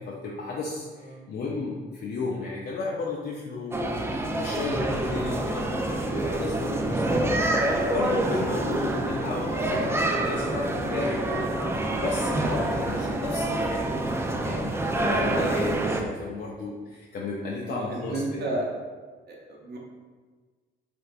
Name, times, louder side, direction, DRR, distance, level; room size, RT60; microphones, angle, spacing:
voice 1, 0.0-7.5 7.9-14.0 14.4-18.4, left 3 dB, 55° left, -3 dB, 0.5 m, -33 dB
sound 1, 3.7-16.0, right 2 dB, 15° right, 0.3 m, -27 dB
sound 2, 6.6-13.1, equal, 5° left, 1.1 m, -39 dB
voice 2, 17.7-18.7 19.3-19.8, right 2 dB, 55° right, -1 dB, 0.7 m, -32 dB
3.4 x 3.2 x 2.4 m, 1.4 s
cardioid pair, 90°, 20 cm